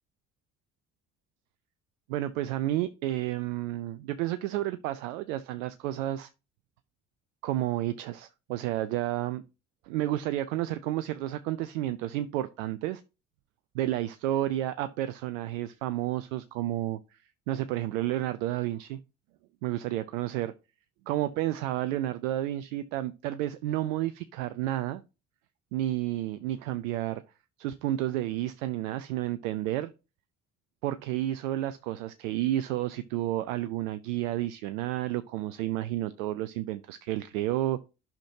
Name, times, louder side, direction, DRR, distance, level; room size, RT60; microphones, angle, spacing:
voice 1, 2.1-6.3 7.4-9.4 9.8-13.0 13.7-17.2 17.5-19.0 19.6-20.5 21.1-25.0 25.7-27.2 27.6-29.9 30.8-37.8, right 14 dB, 75° right, 0.6 m, -31 dB
11.5 x 5.9 x 2.7 m
hypercardioid pair, 50°, 39 cm